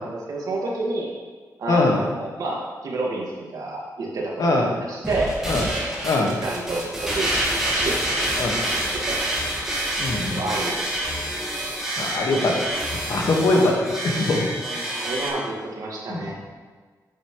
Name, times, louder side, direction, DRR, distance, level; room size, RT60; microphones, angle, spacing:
voice 1, 0.0-1.1 1.6-4.5 4.9-5.3 5.6-6.1 6.4-7.3 7.6-8.0 8.9-9.2 10.3-10.8 14.8-16.3, right 2 dB, 65° right, -2 dB, 2.0 m, -29 dB
voice 2, 1.7-2.0 4.4-4.7 5.5-5.7 6.0-6.4 8.4-8.6 10.0-10.4 12.0-12.8 13.1-14.5 16.1-16.3, left 2 dB, 65° left, 0 dB, 1.6 m, -22 dB
sound 1, 5.0-15.3, right 1 dB, 5° right, 2.0 m, -27 dB
9.7 x 8.3 x 3.2 m, 1.5 s
wide cardioid pair, 150°, 7 cm